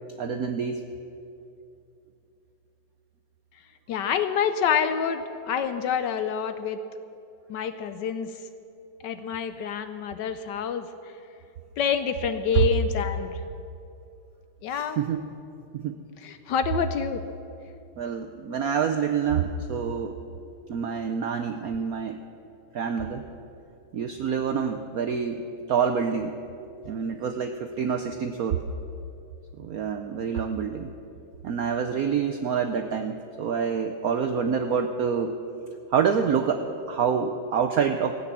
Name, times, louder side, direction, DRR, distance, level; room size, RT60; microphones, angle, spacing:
voice 1, 0.2-0.8 12.5-12.6 14.7-15.2 15.7-16.0 18.0-20.2 20.7-22.2 22.7-23.3 23.9-26.3 26.9-28.6 29.6-30.9 31.4-35.4 35.9-38.1, right 7 dB, 75° right, 6 dB, 0.8 m, -27 dB
voice 2, 3.9-6.8 7.5-8.3 9.0-10.9 11.8-13.4 14.6-15.0 16.2-17.2, left 7 dB, 70° left, 10 dB, 1.1 m, -27 dB
16.0 x 9.2 x 7.3 m, 2.7 s
omnidirectional pair, 2.2 m